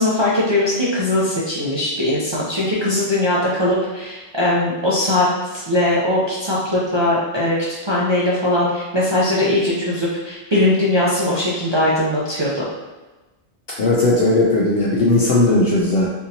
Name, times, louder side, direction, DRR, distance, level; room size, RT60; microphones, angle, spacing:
voice 1, 0.0-7.6 7.9-12.6, left 1 dB, 35° right, -7 dB, 0.4 m, -20 dB
voice 2, 13.8-16.1, left 2 dB, 65° left, -4 dB, 0.7 m, -17 dB
3.5 x 2.7 x 2.7 m, 1.2 s
omnidirectional pair, 1.2 m